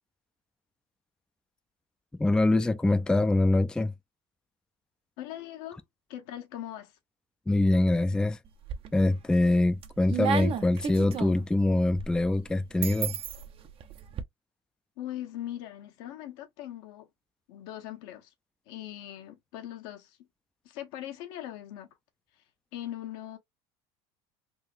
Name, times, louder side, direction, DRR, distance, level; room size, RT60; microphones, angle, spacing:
voice 1, 2.2-3.9 7.5-8.4 8.9-13.2, left 2 dB, 5° left, 0.3 m, -24 dB
voice 2, 5.2-5.8 6.1-7.0 15.0-17.1 17.5-18.3 18.7-20.3 20.6-21.9 22.3-22.4 22.7-23.4, left 12 dB, 75° left, 0.9 m, -40 dB
sound 1, 8.5-9.2 9.6-14.2, right 8 dB, 45° right, 0.6 m, -34 dB
3.6 x 2.4 x 2.5 m
supercardioid pair, 95°, 13 cm